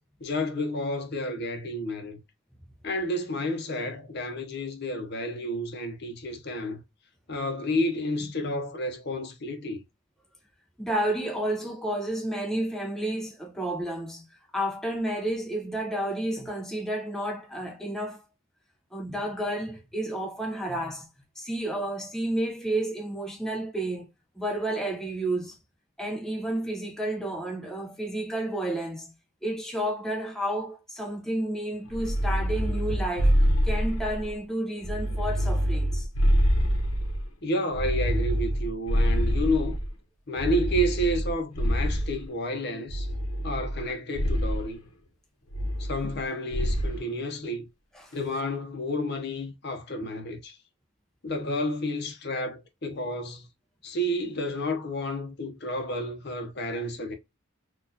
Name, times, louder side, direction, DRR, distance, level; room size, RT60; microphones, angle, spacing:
voice 1, 0.2-2.2 2.8-6.8 7.3-9.8 37.4-39.8 40.3-43.1 43.4-44.8 45.8-47.7 48.1-50.6 51.2-53.5 53.8-57.1, equal, 50° left, 0.7 m, -30 dB
voice 2, 10.8-14.3 14.5-18.2 18.9-21.1 21.4-24.1 24.4-25.6 26.0-29.1 29.4-33.3 33.6-36.1 46.0-46.1 47.0-47.1 47.9-48.2, right 1 dB, ahead, 0.5 m, -31 dB
sound 1, 31.9-34.3 34.8-37.3 37.7-39.9 40.4-42.2 42.9-43.8 44.1-44.6 45.5-46.2 46.5-47.0, equal, 75° left, 0.9 m, -26 dB
4.0 x 2.4 x 2.7 m
head